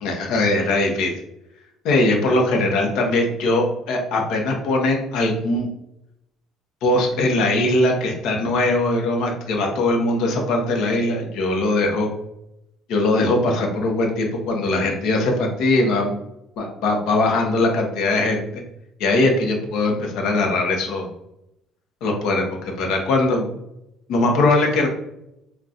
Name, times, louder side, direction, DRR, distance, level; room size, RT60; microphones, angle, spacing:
voice 1, 0.0-1.1 1.8-5.7 6.8-12.1 12.9-16.2 16.6-18.4 19.0-21.1 22.0-23.5 24.1-24.9, left 2 dB, 75° left, 2 dB, 0.7 m, -21 dB
3.8 x 2.3 x 2.4 m, 0.84 s
cardioid pair, 95°, 0 cm